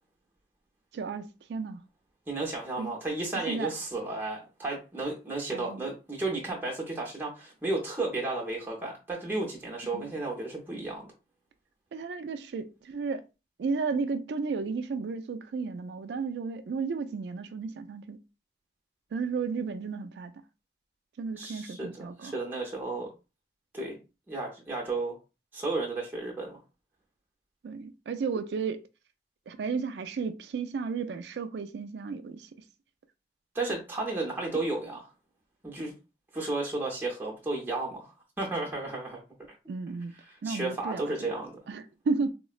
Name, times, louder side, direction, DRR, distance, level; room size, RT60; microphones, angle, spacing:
voice 1, 0.9-1.8 2.8-2.9 3.3-3.7 5.5-5.9 9.9-10.1 11.9-13.2 13.6-18.2 19.1-20.3 21.2-22.4 27.6-28.8 29.5-32.5 39.7-40.1 40.4-41.3 41.7-42.3, right 4 dB, 75° right, 0.3 m, -33 dB
voice 2, 2.3-11.1 21.4-23.1 23.7-24.0 24.3-25.2 25.5-26.6 33.5-35.1 35.6-35.9 36.3-38.1 38.4-39.2 40.4-41.6, right 2 dB, 10° right, 0.6 m, -33 dB
3.7 x 2.0 x 2.4 m
head